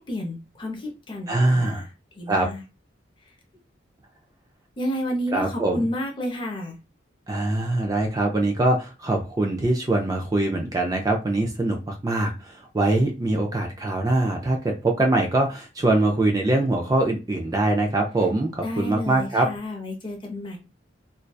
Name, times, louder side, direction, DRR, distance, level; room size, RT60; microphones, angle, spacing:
voice 1, 0.0-1.9 2.2-2.6 4.8-6.7 18.6-20.6, equal, 25° left, 1 dB, 0.6 m, -31 dB
voice 2, 1.3-1.8 2.3-2.5 5.3-5.9 7.3-19.5, right 2 dB, 20° right, 2 dB, 0.3 m, -23 dB
2.6 x 2.2 x 2.2 m, 0.29 s
head